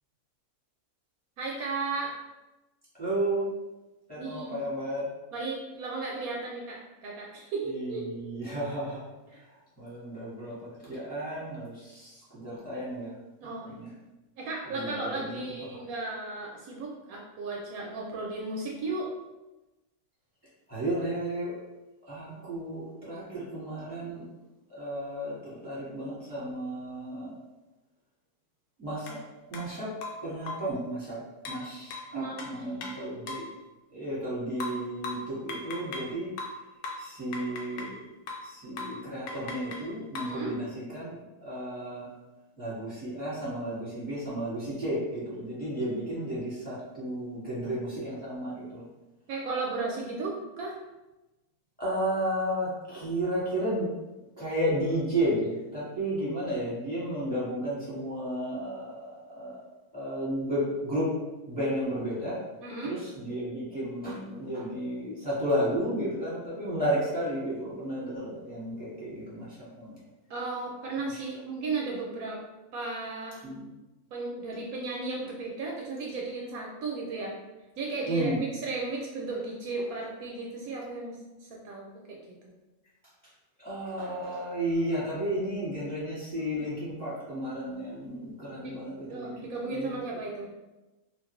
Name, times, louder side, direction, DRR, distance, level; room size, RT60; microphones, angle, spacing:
voice 1, 1.4-2.1 4.2-4.6 5.3-8.0 9.3-9.4 13.4-13.9 14.4-19.1 32.1-32.5 32.9-33.0 40.2-40.5 49.3-50.8 62.6-63.0 70.3-72.4 72.7-73.4 74.1-77.3 77.8-82.5 88.6-88.8 89.1-90.5, right 3 dB, 70° right, -2 dB, 1.0 m, -35 dB
voice 2, 3.0-3.5 4.1-5.1 7.6-9.0 9.8-13.1 13.4-13.9 14.7-15.4 15.7-15.8 20.7-21.5 22.1-24.3 24.7-27.3 28.8-29.2 29.5-29.9 30.2-31.2 31.5-33.5 33.9-36.3 37.0-37.9 38.4-42.1 42.6-48.8 51.8-53.9 54.4-59.6 59.9-61.1 61.5-62.4 62.8-70.0 71.0-71.4 73.4-73.7 78.0-78.4 83.6-90.0, right 1 dB, 5° left, -10 dB, 1.1 m, -33 dB
sound 1, 29.1-29.2 29.5-29.7 30.0-30.8 31.5-33.5 34.6-36.1 36.4-38.0 38.3-38.5 38.8-39.0 39.3-40.4, left 3 dB, 90° left, 1.1 m, -39 dB
2.8 x 2.5 x 3.0 m, 1.1 s
omnidirectional pair, 1.6 m